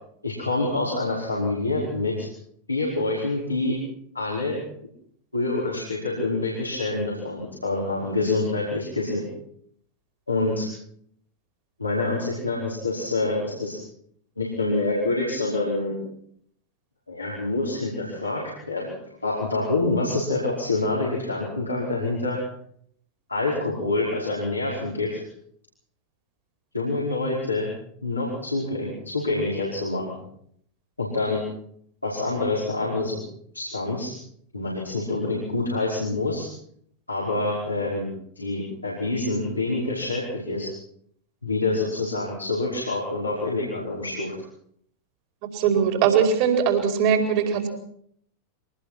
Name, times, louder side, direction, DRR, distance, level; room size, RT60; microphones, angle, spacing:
voice 1, 0.2-2.3 2.7-3.8 4.1-4.6 5.3-9.3 10.3-10.7 11.8-13.8 14.4-15.9 17.1-18.4 18.7-18.9 19.2-22.4 23.3-25.2 26.7-27.7 28.0-30.2 31.0-31.4 32.0-33.2 33.5-34.1 34.5-36.5 37.1-38.1 38.4-40.7 41.4-44.3, left 2 dB, 85° left, -5 dB, 5.2 m, -26 dB
voice 2, 45.4-47.7, right 7 dB, 45° right, 5 dB, 4.9 m, -21 dB
24.0 x 19.0 x 6.0 m, 0.66 s
figure-of-eight pair, 90°, 0 cm